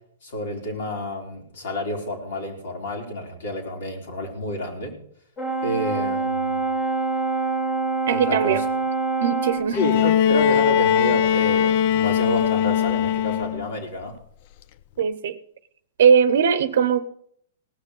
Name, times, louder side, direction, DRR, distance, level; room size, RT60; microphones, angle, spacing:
voice 1, 0.2-4.9 5.6-6.6 8.1-8.6 9.7-14.2, left 1 dB, 70° left, 2 dB, 3.9 m, -29 dB
Brass instrument, 5.4-9.8, right 3 dB, 25° left, 2.3 m, -25 dB
voice 2, 8.1-8.6 9.2-9.8 15.0-15.4 16.0-17.0, right 7 dB, 70° right, 13 dB, 0.7 m, -19 dB
Bowed string instrument, 9.7-13.8 15.0-15.1, left 9 dB, 50° left, 0.5 m, -20 dB
18.0 x 6.6 x 6.5 m, 0.65 s
hypercardioid pair, 125°, 0 cm